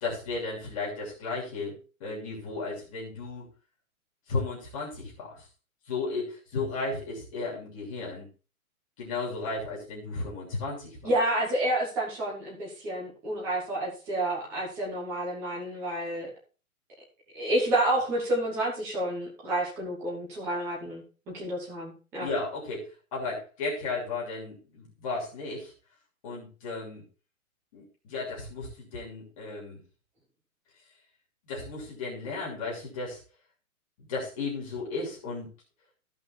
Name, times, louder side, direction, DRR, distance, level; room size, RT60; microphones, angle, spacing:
voice 1, 0.0-1.7 2.0-3.5 4.3-5.5 5.9-8.3 9.0-11.1 22.2-25.7 26.2-27.0 27.7-29.8 31.5-33.2 34.0-35.5, left 3 dB, 25° left, -3 dB, 2.9 m, -34 dB
voice 2, 11.0-16.3 17.3-21.0 21.3-22.3, right 1 dB, 5° right, -4 dB, 1.1 m, -29 dB
14.5 x 5.4 x 4.3 m, 0.36 s
hypercardioid pair, 180°, 43 cm